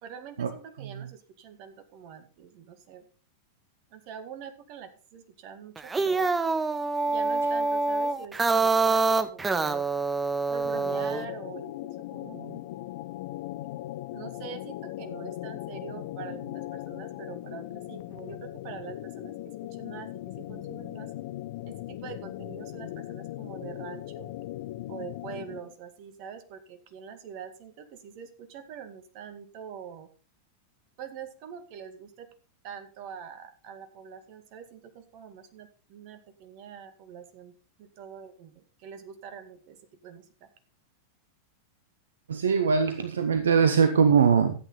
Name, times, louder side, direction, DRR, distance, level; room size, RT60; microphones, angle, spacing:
voice 1, 0.0-3.0 3.9-6.3 7.0-9.9 10.5-12.6 14.1-20.1 20.4-21.1 21.7-24.3 24.9-30.1 31.0-32.3 32.6-37.5 37.8-40.5, right 8 dB, 45° right, 8 dB, 1.9 m, -44 dB
sound 1, 5.8-11.2, right 3 dB, 15° right, 0.8 m, -26 dB
sound 2, 10.6-25.7, left 15 dB, 50° left, 0.6 m, -39 dB
voice 2, 42.3-44.5, right 6 dB, 65° right, 9 dB, 0.9 m, -22 dB
13.5 x 8.7 x 4.1 m, 0.38 s
figure-of-eight pair, 90°, 0 cm